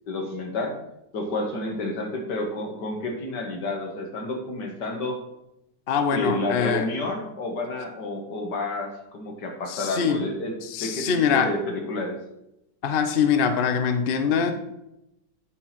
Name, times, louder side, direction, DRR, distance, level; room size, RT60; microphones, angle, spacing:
voice 1, 0.1-0.8 1.1-5.2 6.1-12.2, left 2 dB, 70° left, 3 dB, 2.1 m, -30 dB
voice 2, 5.9-6.9 9.7-10.3 10.6-11.5 12.8-14.5, left 6 dB, 50° left, 7 dB, 0.6 m, -23 dB
8.6 x 4.7 x 5.8 m, 0.85 s
omnidirectional pair, 2.0 m